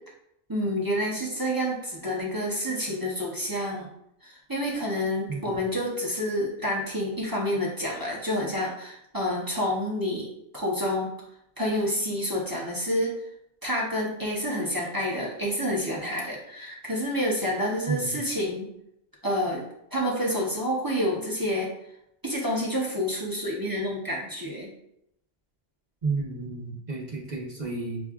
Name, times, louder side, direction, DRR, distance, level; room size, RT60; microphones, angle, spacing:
voice 1, 0.5-3.9 4.2-10.3 10.5-11.1 11.6-13.1 13.6-18.6 19.2-21.7 22.2-24.7, equal, 20° right, -4 dB, 0.7 m, -28 dB
voice 2, 17.9-18.2 26.0-28.0, right 3 dB, 45° right, -3 dB, 1.0 m, -31 dB
7.0 x 2.4 x 2.3 m, 0.77 s
omnidirectional pair, 1.1 m